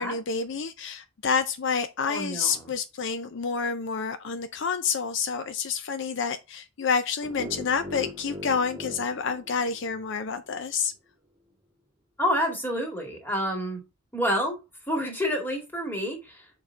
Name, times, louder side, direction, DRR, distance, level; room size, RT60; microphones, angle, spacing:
voice 1, 0.0-10.9, left 5 dB, 60° left, 0.5 m, -28 dB
voice 2, 2.1-2.6 12.2-13.8 14.1-14.6 14.9-16.4, equal, 10° left, 2.0 m, -28 dB
sound 1, 7.2-10.3, left 1 dB, 10° right, 1.8 m, -40 dB
6.5 x 4.0 x 4.4 m
head